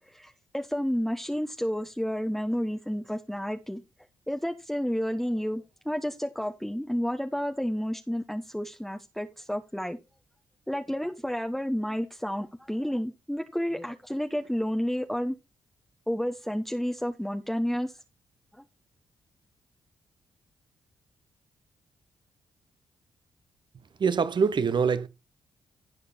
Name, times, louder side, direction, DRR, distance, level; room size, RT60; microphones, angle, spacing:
voice 1, 0.0-3.8 4.3-10.0 10.7-15.3 16.1-17.9 18.5-18.6, equal, ahead, 1.1 m, -31 dB
voice 2, 24.0-25.1, right 6 dB, 50° right, 1.1 m, -24 dB
15.0 x 5.1 x 4.3 m
hypercardioid pair, 45°, 10 cm